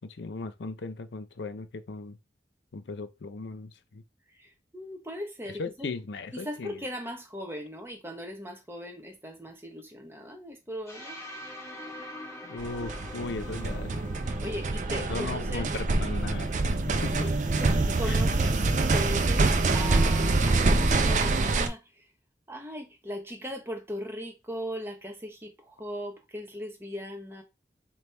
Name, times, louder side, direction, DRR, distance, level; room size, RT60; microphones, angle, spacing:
voice 1, 0.1-2.2 2.7-4.0 5.6-6.8 12.4-13.9 15.0-16.6 17.0-17.3 18.1-18.2, left 3 dB, 90° left, 0.6 m, -37 dB
voice 2, 4.4-5.9 6.3-11.2 14.2-15.7 17.2-17.3 17.6-18.6 18.9-22.0 22.5-27.4, equal, 15° right, 0.9 m, -38 dB
sound 1, 10.9-18.7, left 1 dB, 15° left, 1.0 m, -45 dB
sound 2, 12.6-21.7, right 3 dB, 45° right, 0.5 m, -25 dB
3.4 x 3.0 x 4.3 m
head